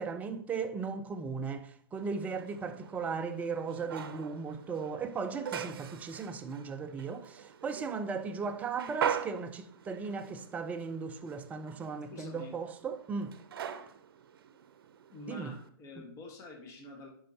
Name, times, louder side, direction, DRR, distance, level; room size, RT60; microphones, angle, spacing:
voice 1, 0.0-13.4 15.3-15.5, right 5 dB, 10° right, 0.5 m, -37 dB
sound 1, 1.9-15.7, right 8 dB, 60° right, 0.7 m, -42 dB
voice 2, 12.1-12.5 15.1-17.1, left 2 dB, 25° left, 1.4 m, -47 dB
10.0 x 5.5 x 2.8 m
hypercardioid pair, 130°, 13 cm